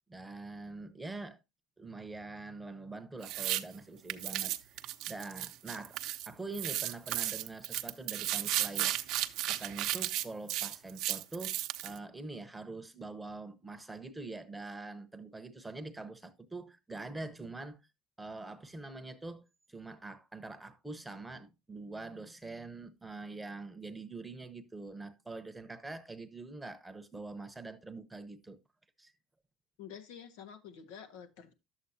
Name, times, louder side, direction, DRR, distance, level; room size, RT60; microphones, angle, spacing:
voice 1, 0.1-1.4 1.8-8.9 9.4-17.8 18.2-28.6 29.0-29.1, right 3 dB, 10° right, 1.0 m, -44 dB
sound 1, 3.2-3.6 4.1-6.3 6.5-12.0, right 14 dB, 70° right, 0.8 m, -34 dB
voice 2, 29.8-31.5, left 8 dB, 85° left, 1.4 m, -49 dB
11.0 x 7.8 x 2.8 m
supercardioid pair, 110°, 0 cm